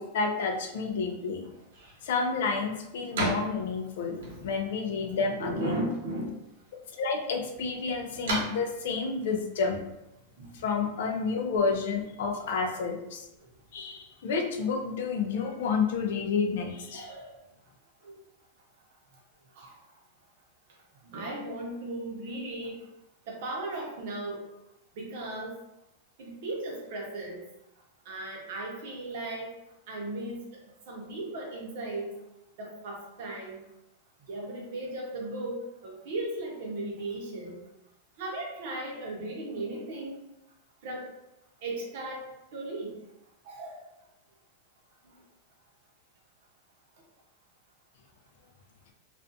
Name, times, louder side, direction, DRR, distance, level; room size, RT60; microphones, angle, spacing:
voice 1, 0.0-1.5 2.0-5.8 7.0-9.8 10.5-13.3 13.7-17.1, left 5 dB, 70° left, 3 dB, 0.4 m, -30 dB
sound 1, 1.5-10.7, right 2 dB, 90° right, 0.9 m, -39 dB
voice 2, 5.4-6.3 10.4-10.5 12.4-12.7 16.9-17.3 18.0-18.2 19.5-19.8 21.0-22.8 23.3-24.4 25.0-25.6 26.2-27.4 28.0-29.5 29.9-30.4 30.9-32.1 32.6-33.6 34.3-37.7 38.2-40.2 40.8-41.1 41.6-42.2 42.5-43.0 43.4-43.8, right 2 dB, 55° right, -1 dB, 0.8 m, -36 dB
2.5 x 2.2 x 2.6 m, 0.89 s
supercardioid pair, 165°, 0 cm